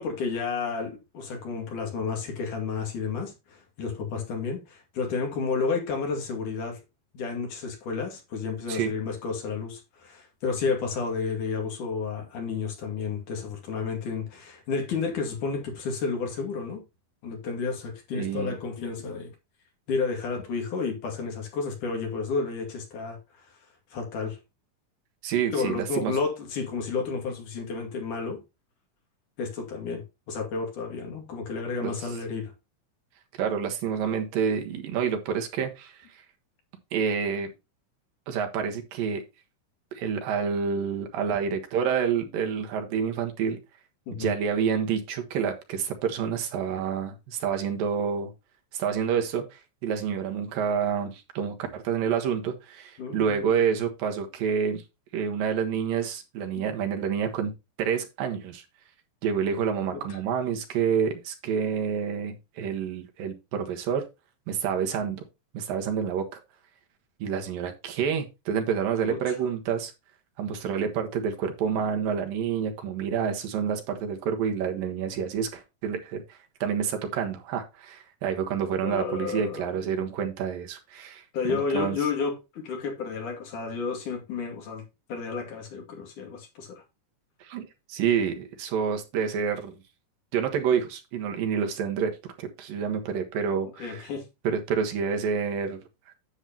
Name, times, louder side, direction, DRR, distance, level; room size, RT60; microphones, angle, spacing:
voice 1, 0.0-6.8 7.1-16.8 17.2-19.3 19.9-23.2 23.9-24.4 25.5-28.4 29.4-32.5 44.1-44.3 53.0-53.5 56.6-56.7 60.1-60.2 69.1-69.4 78.8-79.8 81.3-84.8 85.1-86.8 93.8-94.3, left 5 dB, 65° left, 3.7 m, -31 dB
voice 2, 18.2-18.6 25.2-26.1 31.8-32.1 33.4-36.2 36.9-37.5 38.3-39.2 39.9-43.6 44.1-48.3 48.7-54.8 55.1-57.5 57.8-58.6 59.2-64.0 64.5-65.2 65.5-66.4 67.2-69.9 70.4-76.2 76.6-82.0 87.4-89.8 90.3-92.1 92.4-94.0 94.4-95.8, right 7 dB, 80° right, 3.2 m, -28 dB
9.9 x 8.0 x 2.8 m
omnidirectional pair, 4.0 m